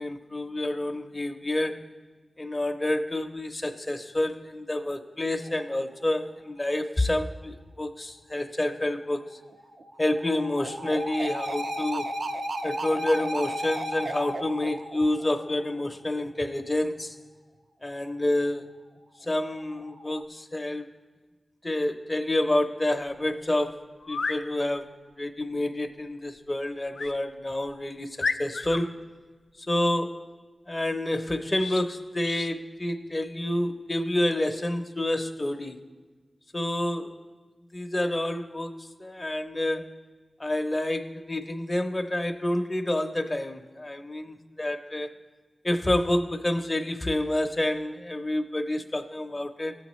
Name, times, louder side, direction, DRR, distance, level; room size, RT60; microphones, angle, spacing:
voice 1, 0.0-1.9 2.4-9.4 10.0-12.1 12.6-17.2 17.8-18.7 19.2-20.9 21.6-24.9 25.2-29.0 29.7-30.3 30.7-35.8 36.5-37.2 37.7-39.9 40.4-45.1 45.6-49.8, left 1 dB, 25° left, 4 dB, 0.6 m, -28 dB
sound 1, 5.4-5.9 9.4-15.9 19.4-20.2, right 1 dB, 80° right, 0.4 m, -34 dB
sound 2, 23.1-23.2 24.0-24.4 26.9-27.2 27.7-27.8 28.2-28.8 31.5-31.8 32.2-32.5, left 4 dB, 80° left, 0.4 m, -31 dB
19.0 x 7.7 x 3.1 m, 1.4 s
wide cardioid pair, 100°, 0 cm